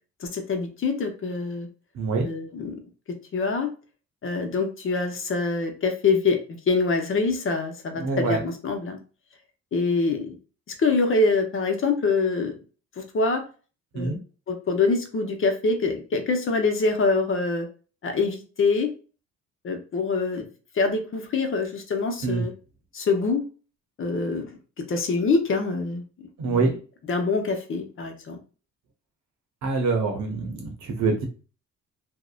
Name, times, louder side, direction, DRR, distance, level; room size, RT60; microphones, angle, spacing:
voice 1, 0.2-1.7 2.2-2.7 3.3-3.7 4.2-9.0 9.7-10.4 10.8-12.5 13.0-13.4 13.9-14.1 14.5-17.7 18.0-18.9 19.6-20.5 20.7-22.5 22.9-23.4 24.0-24.5 24.9-26.7 27.1-28.4, left 3 dB, 45° left, 4 dB, 0.7 m, -25 dB
voice 2, 1.9-2.3 8.0-8.4 13.9-14.2 22.2-22.4 26.4-26.7 29.6-31.3, right 3 dB, 65° right, 3 dB, 0.8 m, -25 dB
2.6 x 2.1 x 2.4 m, 0.36 s
cardioid pair, 90°, 30 cm